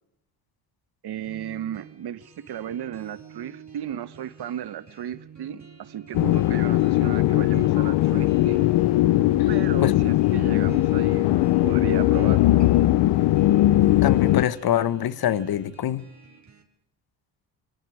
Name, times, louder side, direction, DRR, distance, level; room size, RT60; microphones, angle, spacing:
voice 1, 1.0-8.6 9.5-12.6, right 10 dB, 60° right, 1.3 m, -35 dB
sound 1, 1.2-16.6, right 7 dB, 40° right, 4.5 m, -49 dB
sound 2, 6.1-14.5, left 15 dB, 70° left, 0.8 m, -19 dB
voice 2, 14.0-16.1, left 11 dB, 55° left, 1.3 m, -25 dB
26.0 x 24.0 x 5.0 m
supercardioid pair, 70°, 44 cm